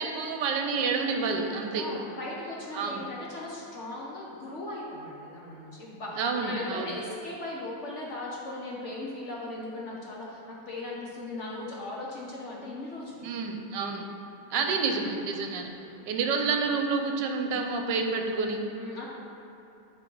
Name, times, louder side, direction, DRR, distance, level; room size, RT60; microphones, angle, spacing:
voice 1, 0.0-1.9 2.7-3.0 6.2-6.9 13.2-14.0 14.5-15.7 16.1-18.6, right 4 dB, 75° right, 4 dB, 1.2 m, -29 dB
voice 2, 1.7-13.3 14.5-14.7 15.5-16.0 18.8-19.1, left 2 dB, 50° left, -4 dB, 0.9 m, -38 dB
11.0 x 3.8 x 4.5 m, 2.8 s
omnidirectional pair, 2.0 m